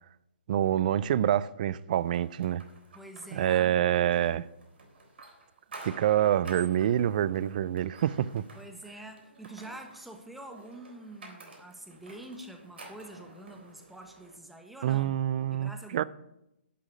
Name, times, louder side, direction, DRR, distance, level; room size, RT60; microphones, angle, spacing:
voice 1, 0.5-2.6 3.3-4.5 5.8-8.4 14.8-16.0, right 11 dB, 45° right, 0.5 m, -26 dB
sound 1, 2.1-14.4, right 3 dB, 65° right, 3.7 m, -51 dB
voice 2, 2.9-3.8 6.1-6.2 8.5-15.2 15.5-16.0, right 1 dB, ahead, 1.2 m, -46 dB
11.0 x 6.3 x 8.4 m
figure-of-eight pair, 135°, 6 cm